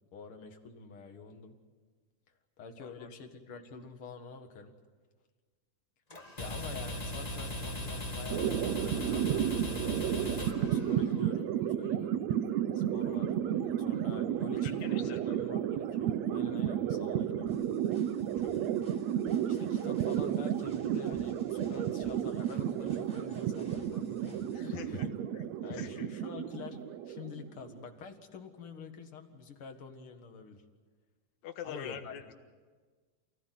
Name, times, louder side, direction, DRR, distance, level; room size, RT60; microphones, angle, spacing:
voice 1, 0.1-1.6 2.6-4.7 6.4-12.3 12.7-17.5 19.4-24.7 25.6-26.8 27.1-30.6 31.6-32.2, left 5 dB, 45° left, 5 dB, 2.3 m, -47 dB
voice 2, 2.8-3.1 6.4-6.5 13.0-13.3 14.5-15.5 18.3-18.9 24.5-25.1 25.3-25.4 25.7-26.1 31.4-32.3, left 8 dB, 60° left, 6 dB, 2.6 m, -45 dB
sound 1, 6.1-11.3, left 1 dB, 25° left, 0.9 m, -38 dB
sound 2, 8.3-27.8, right 10 dB, 70° right, 1.8 m, -32 dB
sound 3, 17.5-24.7, equal, 15° right, 5.6 m, -55 dB
28.5 x 16.5 x 9.5 m, 1.5 s
omnidirectional pair, 3.8 m